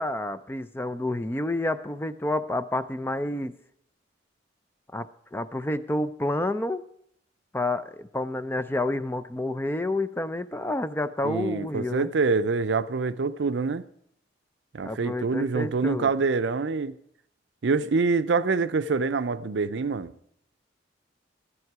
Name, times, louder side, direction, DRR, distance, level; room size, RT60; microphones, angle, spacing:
voice 1, 0.0-3.5 4.9-5.1 5.3-6.8 7.5-12.1 14.8-16.1, left 1 dB, 10° left, 0.4 m, -29 dB
voice 2, 11.2-13.8 14.7-16.9 17.6-20.1, right 4 dB, 70° right, 0.5 m, -25 dB
12.5 x 11.0 x 4.7 m
head